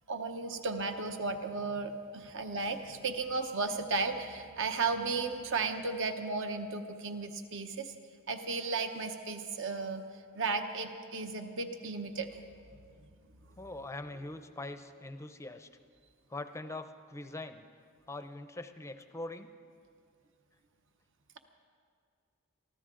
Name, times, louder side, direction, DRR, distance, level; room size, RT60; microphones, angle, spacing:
voice 1, 0.1-7.9 8.3-10.0 10.3-12.4, right 4 dB, 60° right, 7 dB, 1.0 m, -34 dB
voice 2, 13.6-15.7 16.3-17.6 18.1-19.5, left 2 dB, 15° left, 10 dB, 0.5 m, -42 dB
24.0 x 14.5 x 3.8 m, 2.3 s
head